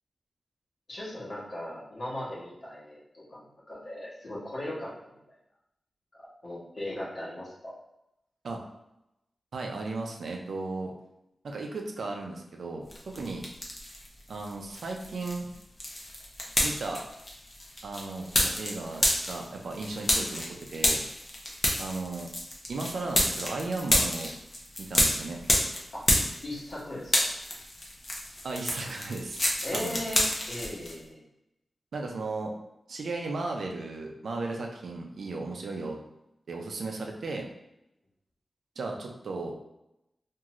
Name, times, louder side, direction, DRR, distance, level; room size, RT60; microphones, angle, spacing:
voice 1, 0.9-3.4 3.7-5.1 6.2-7.7 25.9-26.0 26.4-27.3 29.6-31.2, left 1 dB, 55° left, -7 dB, 1.1 m, -38 dB
voice 2, 9.5-10.9 11.4-13.4 14.3-15.5 16.6-17.0 17.8-21.0 21.8-22.3 22.7-24.3 24.8-25.4 28.4-29.4 29.7-30.0 31.9-32.5 32.9-36.0 36.5-37.5 38.8-39.5, right 3 dB, 85° right, 2 dB, 0.4 m, -35 dB
sound 1, 12.9-14.1 14.4-26.8 27.0-30.9, left 1 dB, 35° left, 0.6 m, -29 dB
2.6 x 2.4 x 3.0 m, 0.87 s
wide cardioid pair, 115°, 0 cm